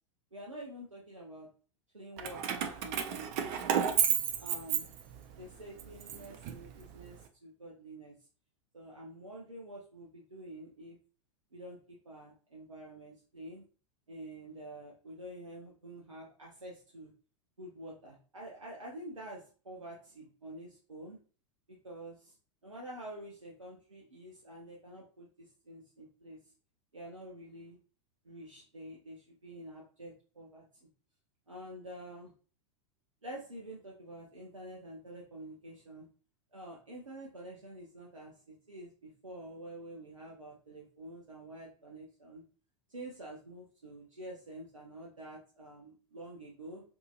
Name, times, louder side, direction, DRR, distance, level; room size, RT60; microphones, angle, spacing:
voice 1, 0.3-1.5 1.9-4.0 4.4-4.9 5.3-8.1 8.7-11.0 11.5-13.7 14.1-17.1 17.6-21.2 21.7-22.4 22.6-26.4 26.9-27.8 28.2-30.9 31.5-32.3 33.2-36.1 36.5-42.4 42.9-46.8, right 1 dB, 90° right, -3 dB, 0.6 m, -48 dB
Keys jangling, 2.2-5.3 5.8-7.1, right 8 dB, 45° right, 0.4 m, -32 dB
2.7 x 2.6 x 2.4 m, 0.38 s
figure-of-eight pair, 85°, 16 cm